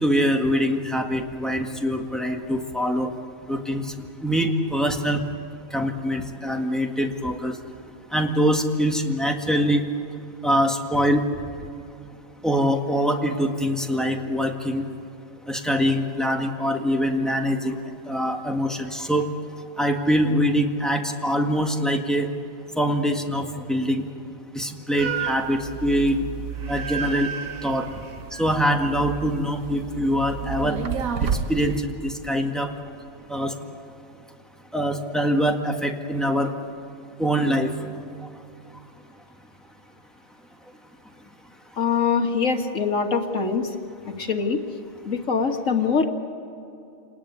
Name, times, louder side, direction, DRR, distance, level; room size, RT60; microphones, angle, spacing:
voice 1, 0.0-3.1 3.5-3.9 4.2-5.2 5.7-7.6 8.1-9.8 10.4-11.2 12.4-14.9 15.5-17.8 18.1-19.3 19.8-22.3 22.8-24.0 24.5-26.2 26.7-27.3 27.6-27.9 28.4-30.8 31.2-32.7 33.3-33.5 34.7-36.5 37.2-37.7, equal, ahead, 3 dB, 1.7 m, -23 dB
sound 1, 25.0-31.8, right 7 dB, 80° right, 1.6 m, -31 dB
voice 2, 41.8-43.7 44.1-44.6 45.0-46.1, left 5 dB, 65° left, 4 dB, 2.1 m, -23 dB
28.5 x 19.0 x 9.7 m, 2.7 s
omnidirectional pair, 1.4 m